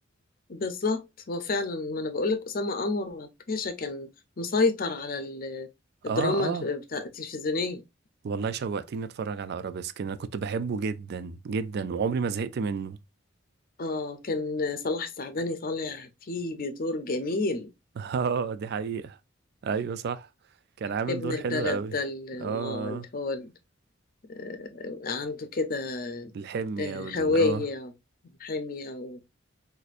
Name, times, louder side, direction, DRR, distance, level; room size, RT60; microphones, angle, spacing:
voice 1, 0.5-4.1 4.4-5.7 6.0-7.8 13.8-17.7 21.1-23.5 24.3-26.3 26.8-27.9 28.4-29.2, left 3 dB, 45° left, 0.6 m, -30 dB
voice 2, 6.0-6.7 8.2-13.0 18.0-19.2 19.6-20.3 20.8-22.0 22.4-23.1 26.3-27.6, right 5 dB, 55° right, 0.3 m, -31 dB
4.1 x 2.6 x 2.5 m
head